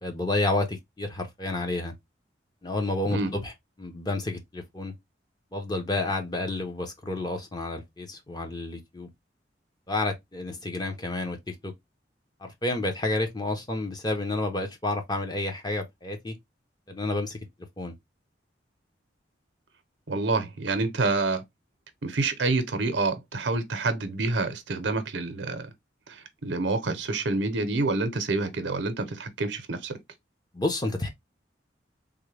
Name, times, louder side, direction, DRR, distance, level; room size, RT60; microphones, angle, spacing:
voice 1, 0.0-1.9 2.6-3.5 3.8-4.9 5.5-9.1 9.9-11.7 12.4-16.3 16.9-17.4 17.8-17.9 30.5-31.1, left 2 dB, 20° left, 0.7 m, -30 dB
voice 2, 20.1-21.4 22.0-25.7 26.1-29.9, right 3 dB, 75° right, 0.7 m, -27 dB
3.5 x 2.1 x 3.2 m
head